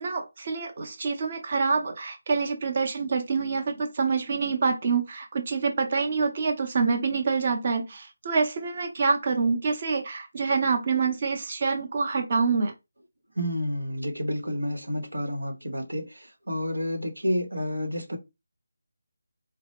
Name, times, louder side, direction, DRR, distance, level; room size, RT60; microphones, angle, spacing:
voice 1, 0.0-12.7, right 4 dB, 40° right, 0.8 m, -26 dB
voice 2, 13.4-18.2, equal, 85° right, 1.0 m, -30 dB
3.9 x 2.0 x 3.0 m
figure-of-eight pair, 160°, 0 cm